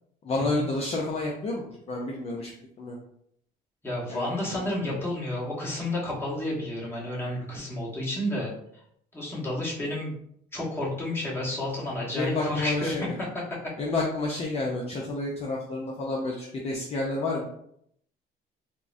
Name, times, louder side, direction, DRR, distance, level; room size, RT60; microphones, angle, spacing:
voice 1, 0.2-3.0 4.1-5.0 12.2-13.1 13.8-17.5, left 2 dB, 40° left, -2 dB, 0.5 m, -30 dB
voice 2, 3.8-8.5 9.1-10.1 10.5-13.1, left 1 dB, 15° left, -6 dB, 1.2 m, -31 dB
3.6 x 2.0 x 2.5 m, 0.71 s
cardioid pair, 110°, 17 cm